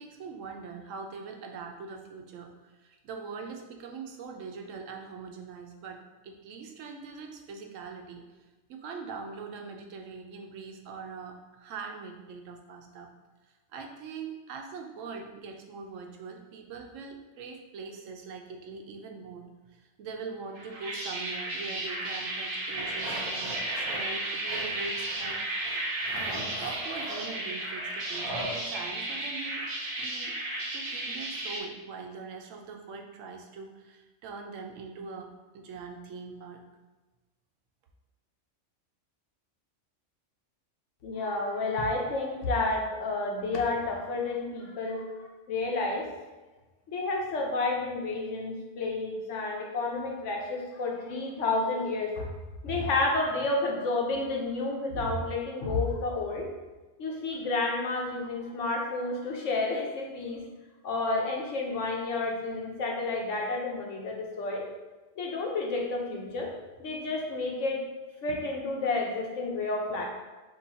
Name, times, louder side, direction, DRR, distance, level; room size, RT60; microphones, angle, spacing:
voice 1, 0.0-8.2 8.7-13.1 13.7-25.4 26.1-29.7 30.0-30.4 30.7-36.6, right 5 dB, 90° right, 3 dB, 1.0 m, -42 dB
sound 1, 20.5-31.6, right 1 dB, 50° right, 0.9 m, -34 dB
sound 2, 22.7-24.0 24.4-25.3 25.6-28.6, right 1 dB, 25° right, 0.6 m, -40 dB
voice 2, 41.0-45.1 45.5-46.1 46.9-52.3 52.6-56.5 57.0-60.4 60.8-64.6 65.2-66.5 66.8-67.8 68.2-70.1, left 3 dB, 75° left, 0 dB, 1.2 m, -30 dB
6.7 x 2.6 x 2.7 m, 1.2 s
omnidirectional pair, 1.3 m